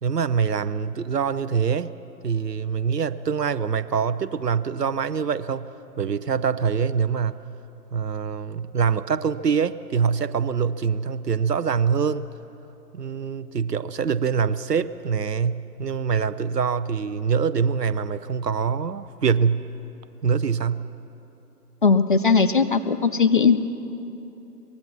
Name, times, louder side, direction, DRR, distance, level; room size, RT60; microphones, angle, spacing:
voice 1, 0.0-1.9 2.2-7.4 7.9-12.3 12.9-19.7 20.2-20.9, right 6 dB, 75° right, 16 dB, 0.8 m, -24 dB
voice 2, 21.8-23.6, left 5 dB, 35° left, 9 dB, 0.5 m, -18 dB
24.0 x 20.5 x 5.9 m, 3.0 s
figure-of-eight pair, 130°, 48 cm